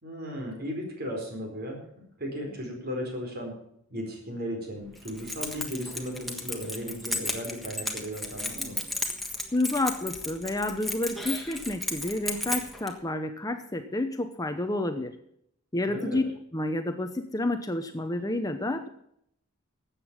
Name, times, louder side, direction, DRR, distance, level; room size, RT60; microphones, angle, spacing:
voice 1, 0.0-3.5 3.9-8.7 15.9-16.2, equal, 45° right, 1 dB, 4.5 m, -36 dB
Keys jangling, 5.0-12.9, left 1 dB, ahead, 1.4 m, -34 dB
voice 2, 9.5-15.1 15.7-16.2 16.5-18.9, left 2 dB, 15° left, 7 dB, 0.8 m, -29 dB
13.5 x 8.3 x 7.4 m, 0.70 s
head